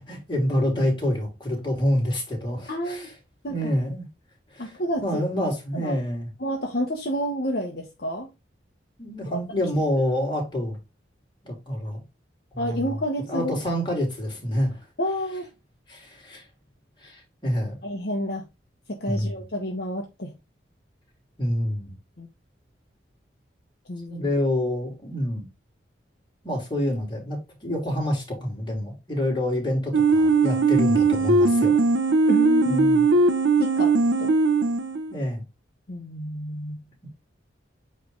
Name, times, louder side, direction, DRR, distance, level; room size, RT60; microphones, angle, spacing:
voice 1, 0.0-3.1 3.5-4.0 4.5-6.3 9.0-10.8 11.4-12.0 12.5-12.9 13.3-14.9 15.9-16.4 17.0-17.8 19.0-19.4 21.4-21.9 24.1-25.4 26.4-31.8 32.7-33.1 35.1-35.4, left 1 dB, 25° left, 3.3 m, -27 dB
voice 2, 2.7-3.1 3.4-3.8 4.6-5.2 5.7-6.0 6.4-8.3 9.3-9.4 12.6-13.6 15.0-15.5 17.8-18.4 18.9-20.3 22.2-22.3 23.9-24.3 32.3-32.9 33.6-34.3 35.9-36.8, equal, 55° left, 1.1 m, -29 dB
sound 1, 29.9-35.2, right 3 dB, 80° right, 0.7 m, -20 dB
8.5 x 3.3 x 3.8 m
head